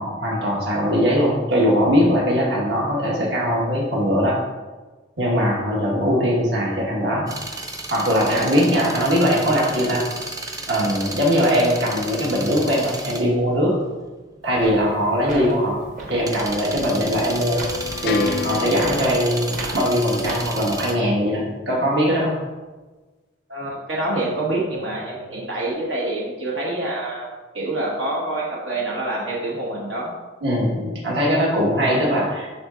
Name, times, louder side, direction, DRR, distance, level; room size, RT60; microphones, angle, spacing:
voice 1, 0.0-4.4 5.2-7.3 7.9-10.0 10.7-13.7 14.4-15.8 16.1-17.6 18.0-22.3 30.4-32.5, equal, 65° right, -4 dB, 1.5 m, -20 dB
sound 1, 7.3-20.9, right 2 dB, 20° right, 0.5 m, -33 dB
sound 2, 14.4-20.8, right 1 dB, 45° right, 1.2 m, -37 dB
sound 3, 15.6-22.0, left 5 dB, 55° left, 0.4 m, -33 dB
voice 2, 23.5-30.1, right 2 dB, 80° right, -4 dB, 1.4 m, -26 dB
11.0 x 4.1 x 2.5 m, 1.2 s
head